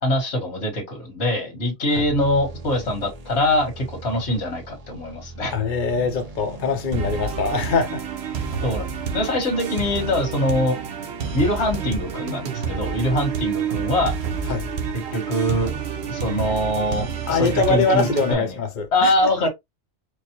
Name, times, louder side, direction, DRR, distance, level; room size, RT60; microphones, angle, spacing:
voice 1, 0.0-5.5 8.6-10.8 11.3-14.2 14.9-15.7 16.1-18.6 18.9-19.5, left 1 dB, 80° left, 1.7 m, -23 dB
sound 1, 1.9-9.9, right 3 dB, 40° right, 0.8 m, -40 dB
voice 2, 5.5-8.0 14.5-14.7 17.3-19.1, left 4 dB, 55° left, 0.8 m, -23 dB
sound 2, 6.9-18.3, right 6 dB, 75° right, 1.1 m, -29 dB
4.7 x 2.1 x 2.9 m
omnidirectional pair, 1.1 m